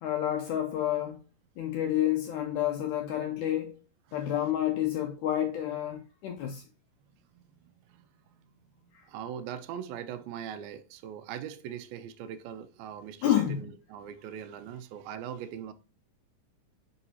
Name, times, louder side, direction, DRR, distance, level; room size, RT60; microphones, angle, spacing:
voice 1, 0.0-1.2 1.6-3.7 4.1-6.6 8.9-9.1 13.2-13.7, left 11 dB, 85° left, 1.8 m, -29 dB
voice 2, 7.2-15.7, right 9 dB, 85° right, 2.4 m, -42 dB
9.2 x 3.8 x 2.7 m
omnidirectional pair, 4.1 m